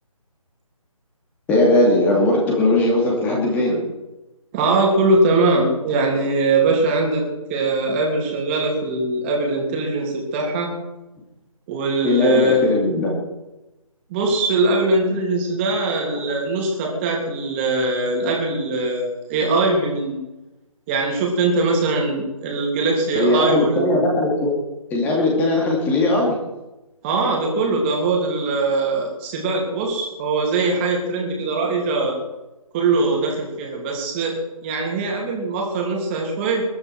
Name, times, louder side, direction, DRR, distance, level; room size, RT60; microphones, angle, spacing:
voice 1, 1.5-3.8 12.0-13.1 23.1-24.5 24.9-26.4, left 1 dB, 10° left, -2 dB, 2.7 m, -18 dB
voice 2, 4.5-7.2 7.5-10.7 11.7-12.6 14.1-20.2 20.9-23.9 27.0-32.2 32.7-34.3 34.6-36.6, right 3 dB, 20° right, -1 dB, 3.2 m, -21 dB
21.0 x 11.0 x 4.8 m, 1.0 s
figure-of-eight pair, 155°, 19 cm